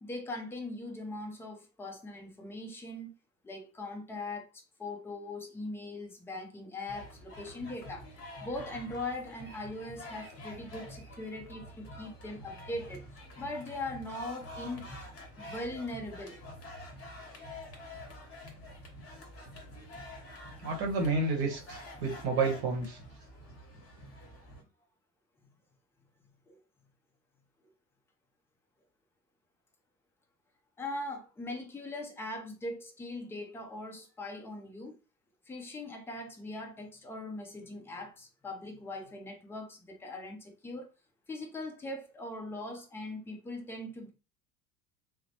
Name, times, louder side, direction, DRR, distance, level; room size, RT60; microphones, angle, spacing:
voice 1, 0.0-3.1 3.4-8.1 8.4-14.9 15.4-16.4 25.4-25.5 26.2-26.6 30.8-34.9 35.5-40.9 41.3-44.1, left 2 dB, 5° left, 0.3 m, -40 dB
sound 1, 6.9-24.6, left 1 dB, 30° left, 1.1 m, -47 dB
voice 2, 20.6-23.0, right 3 dB, 50° right, 0.9 m, -30 dB
2.9 x 2.0 x 2.7 m
figure-of-eight pair, 75°, 48 cm